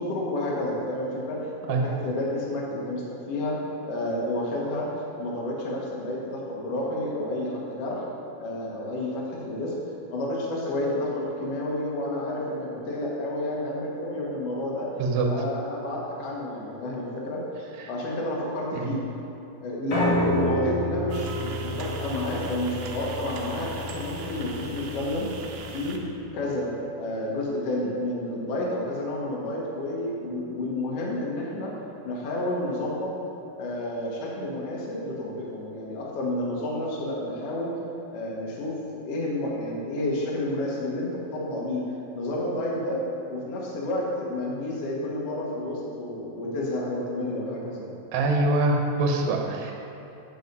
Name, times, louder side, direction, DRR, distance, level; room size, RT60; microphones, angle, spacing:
voice 1, 0.0-3.6 3.9-4.9 5.2-8.0 8.4-9.7 10.1-14.9 15.3-17.4 17.9-19.0 19.6-25.3 25.7-26.0 26.3-26.7 27.0-31.7 32.0-33.1 33.6-37.7 38.1-38.7 39.0-43.0 43.3-47.9, left 1 dB, 80° left, -4 dB, 1.3 m, -30 dB
Piano, 19.9-26.1, equal, 55° left, 1.6 m, -30 dB
sound 1, 21.1-26.0, right 4 dB, 90° right, 1.9 m, -40 dB
voice 2, 48.1-49.7, right 2 dB, 75° right, 1 dB, 2.3 m, -24 dB
8.0 x 6.0 x 5.3 m, 2.8 s
omnidirectional pair, 4.8 m